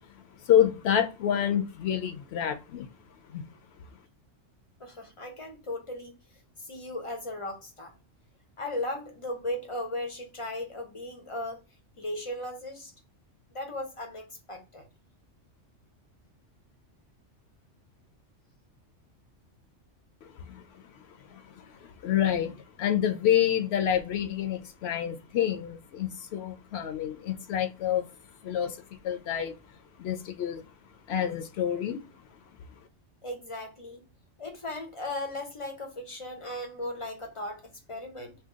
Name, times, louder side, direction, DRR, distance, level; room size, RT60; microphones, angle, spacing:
voice 1, 0.5-2.9 3.3-3.4 20.5-20.6 21.3-21.4 21.8-28.0 28.4-28.8 29.0-29.6 30.0-30.6 31.1-32.0, left 10 dB, 65° left, 0.8 m, -27 dB
voice 2, 4.8-6.1 6.6-8.0 8.6-11.6 12.0-12.9 13.5-14.9 21.3-21.4 33.2-34.0 34.4-37.6 37.9-38.4, left 1 dB, 40° left, 0.5 m, -36 dB
2.8 x 2.3 x 3.5 m
omnidirectional pair, 1.2 m